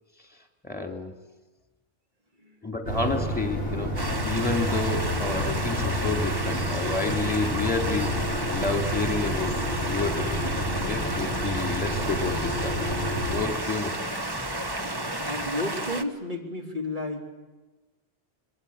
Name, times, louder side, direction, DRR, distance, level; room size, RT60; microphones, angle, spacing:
voice 1, 0.6-1.2 2.6-9.5 9.8-14.0, left 3 dB, 10° left, 4 dB, 2.9 m, -30 dB
sound 1, 2.9-13.4, equal, 70° right, 4.2 m, -30 dB
sound 2, 4.0-16.0, right 2 dB, 25° right, 1.1 m, -32 dB
sound 3, 7.9-15.5, left 3 dB, 30° left, 1.1 m, -41 dB
voice 2, 15.3-17.3, left 1 dB, 50° right, 1 dB, 3.5 m, -32 dB
25.5 x 21.5 x 8.7 m, 1.2 s
omnidirectional pair, 1.1 m